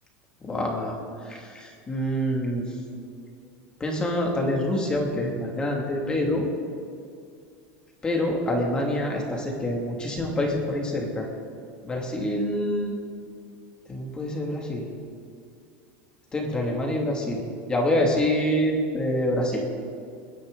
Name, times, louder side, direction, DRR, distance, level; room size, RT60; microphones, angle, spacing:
voice 1, 0.4-2.7 3.8-6.5 8.0-11.3 11.8-13.0 13.9-14.9 16.3-17.4 17.7-19.6, left 1 dB, 15° left, 0 dB, 2.5 m, -26 dB
29.0 x 10.5 x 4.0 m, 2.3 s
supercardioid pair, 160°, 6 cm